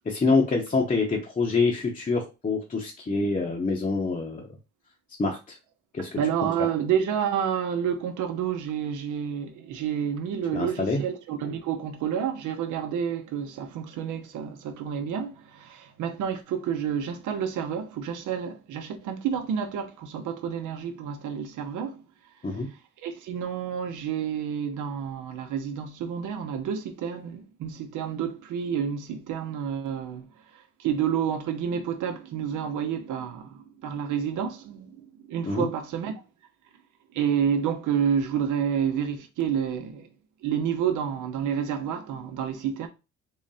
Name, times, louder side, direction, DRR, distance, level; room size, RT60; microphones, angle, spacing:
voice 1, 0.0-4.5 5.2-5.6 5.9-6.2 10.5-11.0 22.4-22.7 35.4-35.7, left 3 dB, 25° left, 0.8 m, -26 dB
voice 2, 6.0-22.0 23.0-30.3 30.8-36.1 37.1-40.1 40.4-42.9, right 8 dB, 85° right, 0.8 m, -29 dB
3.9 x 2.1 x 4.0 m
cardioid pair, 90°, 30 cm